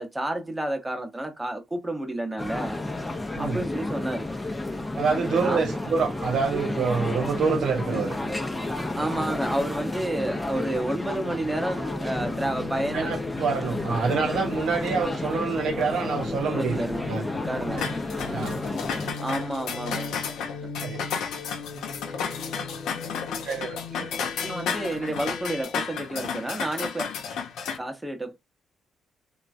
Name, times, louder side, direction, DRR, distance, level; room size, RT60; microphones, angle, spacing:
voice 1, 0.0-2.8 3.4-4.3 5.4-5.6 9.0-13.1 16.5-17.1 17.4-17.8 19.2-20.2 20.6-20.7 24.4-27.1 27.8-28.4, right 1 dB, 10° right, 0.8 m, -30 dB
sound 1, 2.4-19.1, left 2 dB, 10° left, 0.6 m, -31 dB
voice 2, 5.0-8.1 12.9-17.3 17.8-17.9 18.3-18.6 20.8-21.0 23.4-24.1, right 5 dB, 75° right, 0.7 m, -27 dB
sound 2, 6.4-25.6, left 3 dB, 60° left, 1.0 m, -39 dB
Pots & pans, 17.8-27.8, left 6 dB, 85° left, 0.6 m, -33 dB
2.9 x 2.3 x 2.5 m
cardioid pair, 90°, 0 cm